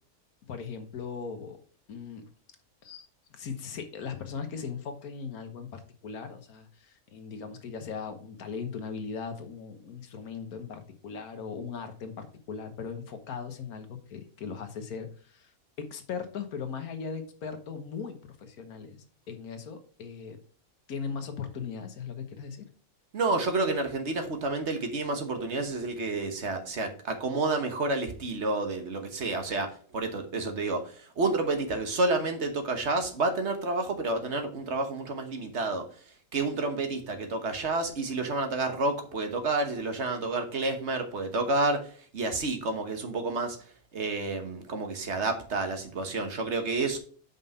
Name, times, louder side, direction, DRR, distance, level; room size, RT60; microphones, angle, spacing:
voice 1, 0.5-1.6 1.9-2.2 2.8-3.0 3.3-15.5 15.8-20.4 20.9-22.7, left 6 dB, 75° left, 8 dB, 1.5 m, -38 dB
voice 2, 23.1-35.9 36.3-43.6 43.9-47.0, right 3 dB, 50° right, 6 dB, 1.4 m, -30 dB
5.5 x 5.4 x 5.4 m, 0.43 s
omnidirectional pair, 1.6 m